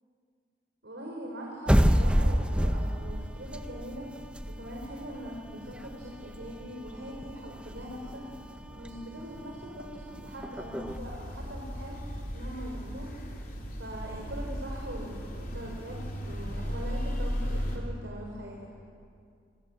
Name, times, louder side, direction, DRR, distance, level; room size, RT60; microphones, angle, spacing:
voice 1, 0.8-4.1 4.5-13.1 13.7-18.6, equal, 80° right, -1 dB, 4.3 m, -42 dB
sound 1, 1.7-11.0, equal, 5° right, 0.8 m, -29 dB
sound 2, 10.9-17.8, equal, 55° left, 4.5 m, -36 dB
25.5 x 22.5 x 7.8 m, 2.3 s
head